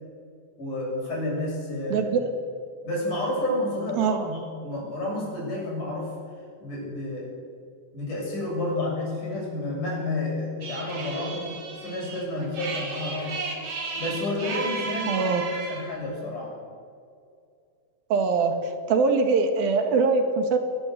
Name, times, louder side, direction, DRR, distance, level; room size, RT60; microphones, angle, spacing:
voice 1, 0.6-2.1 2.8-6.1 6.6-7.3 7.9-13.4 14.0-16.6, left 1 dB, 55° left, -3 dB, 9.0 m, -30 dB
voice 2, 1.9-2.3 4.0-4.3 15.1-15.4 18.1-18.6 18.9-20.6, right 4 dB, 75° right, 6 dB, 3.7 m, -22 dB
sound 1, 10.6-15.9, right 4 dB, 45° right, 3.6 m, -34 dB
22.5 x 20.0 x 8.4 m, 2.3 s
omnidirectional pair, 4.3 m